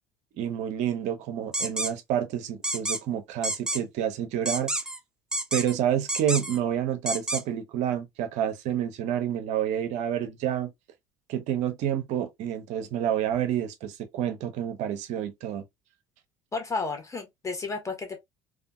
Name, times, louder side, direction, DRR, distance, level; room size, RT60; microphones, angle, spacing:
voice 1, 0.4-4.7 5.5-10.7 11.3-15.6, right 10 dB, 50° right, 0.6 m, -29 dB
sound 1, 1.5-1.9 2.6-3.0 3.4-3.8 4.5-5.0 5.3-5.7 6.1-6.6 7.1-7.4, right 1 dB, 5° right, 0.4 m, -29 dB
voice 2, 16.5-18.2, left 4 dB, 20° left, 1.0 m, -32 dB
2.6 x 2.3 x 2.3 m
figure-of-eight pair, 60°, 15 cm